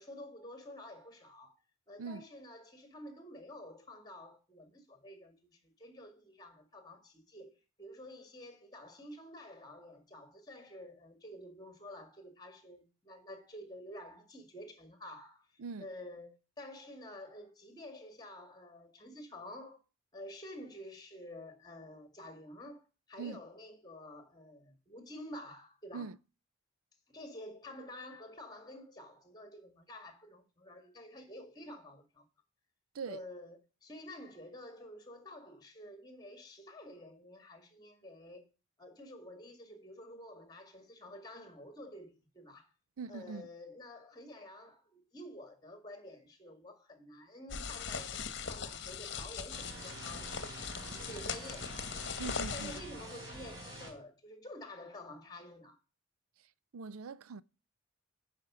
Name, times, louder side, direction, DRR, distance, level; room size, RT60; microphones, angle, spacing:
voice 1, 0.0-1.5 1.9-19.8 20.1-26.1 27.1-32.2 33.1-38.5 38.8-42.7 43.1-51.9 52.4-55.8, left 1 dB, 20° left, 2.0 m, -50 dB
voice 2, 43.0-43.5 52.2-52.8 56.4-57.4, right 5 dB, 85° right, 0.5 m, -42 dB
sound 1, 47.5-52.8, left 6 dB, 55° left, 1.1 m, -40 dB
sound 2, 49.5-53.9, right 1 dB, 20° right, 4.4 m, -47 dB
10.5 x 5.2 x 6.1 m
head